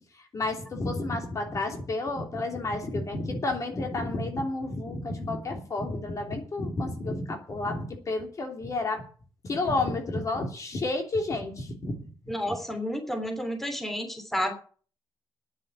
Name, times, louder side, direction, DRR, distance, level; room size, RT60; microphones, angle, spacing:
voice 1, 0.3-9.0 9.4-12.1 12.5-12.6, left 2 dB, 40° left, 3 dB, 3.0 m, -31 dB
voice 2, 12.3-14.5, equal, 5° left, 5 dB, 3.0 m, -31 dB
10.0 x 7.5 x 9.5 m, 0.41 s
cardioid pair, 125°, 8 cm